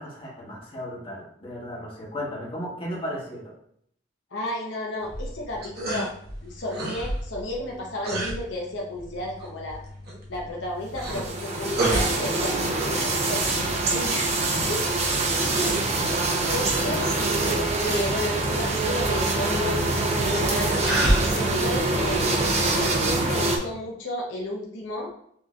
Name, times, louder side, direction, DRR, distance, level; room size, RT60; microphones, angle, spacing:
voice 1, 0.0-3.5 15.6-15.8, equal, 30° left, -4 dB, 1.3 m, -34 dB
voice 2, 4.3-6.1 6.4-9.8 10.3-13.4 13.9-14.8 15.3-15.5 16.4-17.1 17.8-20.8 21.3-22.5 22.8-25.1, left 1 dB, 75° left, -2 dB, 0.8 m, -33 dB
sound 1, 5.0-23.7, right 1 dB, 55° right, 1.2 m, -33 dB
sound 2, 11.0-23.6, right 2 dB, 35° right, 0.7 m, -24 dB
6.1 x 2.8 x 2.4 m, 0.67 s
head